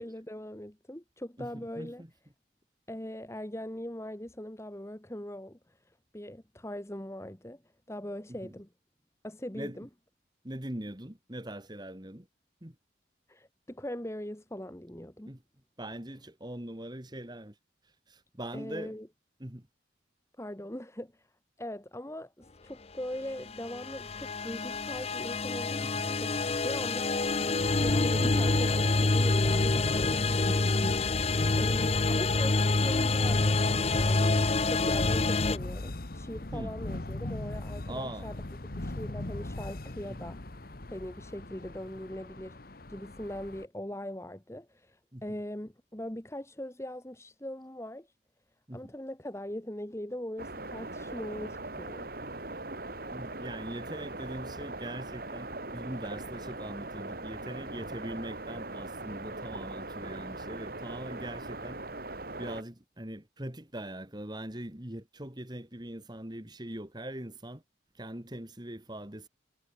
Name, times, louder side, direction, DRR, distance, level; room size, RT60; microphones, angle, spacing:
voice 1, 0.0-2.0 2.9-7.6 7.9-8.7 9.2-9.9 13.3-15.3 18.5-19.1 20.4-21.3 21.6-30.6 31.6-33.6 33.9-34.4 34.7-38.4 38.7-40.6 40.9-48.1 48.7-52.1, left 1 dB, 15° left, 1.3 m, -41 dB
voice 2, 1.4-2.1 8.4-8.5 9.5-9.8 10.4-12.3 12.6-12.8 15.3-15.4 15.8-17.5 18.1-19.0 19.4-19.7 25.9-26.0 28.1-28.5 30.5-31.0 36.5-36.8 37.9-38.3 40.1-40.3 45.1-45.2 48.7-48.9 53.1-61.8 62.4-67.6 68.0-69.3, right 1 dB, 20° right, 2.0 m, -41 dB
sound 1, 23.3-35.6, left 3 dB, 30° left, 0.8 m, -27 dB
sound 2, 27.6-43.6, left 1 dB, 50° left, 1.3 m, -38 dB
sound 3, 50.4-62.6, right 2 dB, 50° right, 2.6 m, -40 dB
head